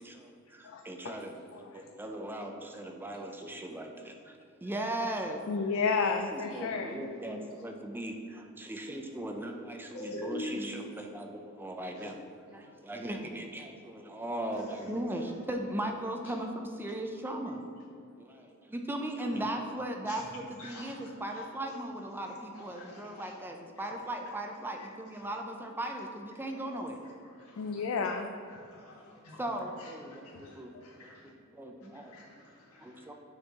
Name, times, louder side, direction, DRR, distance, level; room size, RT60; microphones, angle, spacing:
voice 1, 0.0-5.6 6.3-12.2 12.5-17.6 18.2-27.0 29.4-30.7 31.0-31.1 31.5-32.1 32.8-33.1, right 1 dB, 10° right, 3 dB, 0.4 m, -38 dB
voice 2, 0.6-1.2 1.7-1.8 5.5-7.1 26.8-26.9 27.6-28.3 30.4-30.9, left 4 dB, 65° left, 4 dB, 0.4 m, -32 dB
voice 3, 9.9-10.7 20.6-20.9 22.5-23.3 27.4-27.8 28.7-29.4 29.8-29.9 30.2-31.2 31.9-32.9, left 1 dB, 90° left, -3 dB, 1.4 m, -44 dB
6.4 x 4.5 x 3.5 m, 2.5 s
head